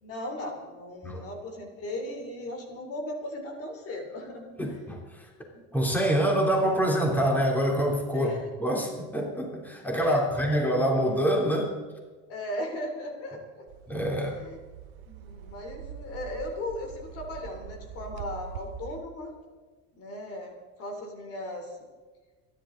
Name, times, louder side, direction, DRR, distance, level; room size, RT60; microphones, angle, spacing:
voice 1, 0.0-4.8 5.5-5.6 8.1-8.5 10.0-10.5 11.1-11.2 12.3-13.6 14.1-14.6 15.1-19.4 20.0-21.8, left 1 dB, 50° left, 3 dB, 3.3 m, -37 dB
voice 2, 4.6-5.2 5.7-11.7 13.9-14.3, equal, 5° left, -1 dB, 3.1 m, -26 dB
sound 1, 13.7-19.0, right 8 dB, 85° right, 1.0 m, -43 dB
28.0 x 11.0 x 3.9 m, 1.3 s
supercardioid pair, 115°, 30 cm